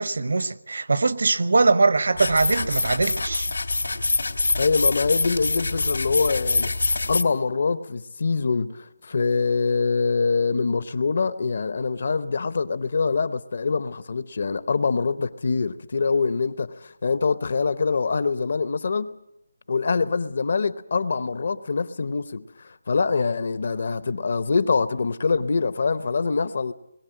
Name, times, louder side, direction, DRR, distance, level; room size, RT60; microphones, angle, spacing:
voice 1, 0.0-3.5, right 3 dB, 55° right, 0.9 m, -21 dB
sound 1, 2.2-7.2, left 3 dB, 80° left, 3.0 m, -25 dB
voice 2, 4.6-19.1 19.7-26.7, left 4 dB, 40° left, 0.7 m, -24 dB
21.5 x 15.5 x 8.9 m
hypercardioid pair, 180°, 0 cm